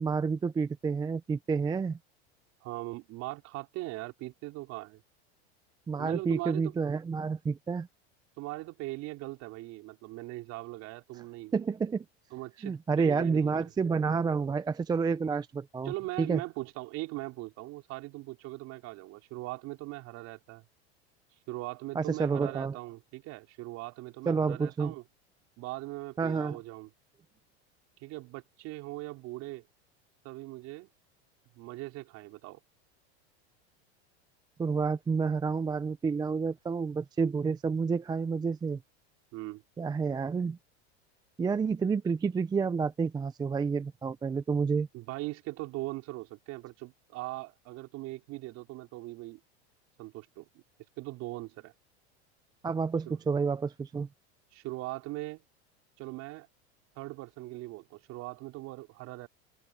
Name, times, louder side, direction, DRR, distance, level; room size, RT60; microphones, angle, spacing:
voice 1, 0.0-2.0 5.9-7.9 11.5-12.0 12.6-15.9 16.2-16.4 21.9-22.8 24.3-24.9 26.2-26.6 34.6-38.8 39.8-40.6 41.4-44.9 52.6-54.1, right 5 dB, 10° right, 0.6 m, -29 dB
voice 2, 2.6-5.0 6.0-6.7 8.4-11.5 12.3-13.7 15.8-20.6 21.5-25.0 25.6-26.9 28.0-29.6 30.2-30.9 31.5-32.6 39.3-39.6 44.9-49.4 50.0-50.5 51.0-51.7 53.1-53.2 54.5-55.4 56.0-56.5 56.9-59.3, right 20 dB, 50° right, 4.8 m, -40 dB
supercardioid pair, 125°, 33 cm